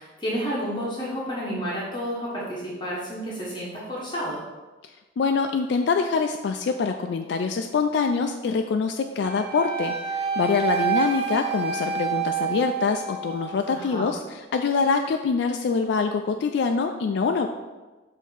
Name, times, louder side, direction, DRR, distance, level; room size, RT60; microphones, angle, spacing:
voice 1, 0.0-4.4 13.7-14.1, equal, 25° left, -6 dB, 1.1 m, -31 dB
voice 2, 4.8-17.5, left 5 dB, 65° left, 4 dB, 0.3 m, -25 dB
Wind instrument woodwind instrument, 9.2-13.5, right 7 dB, 30° right, 0.8 m, -28 dB
6.3 x 2.7 x 5.6 m, 1.2 s
head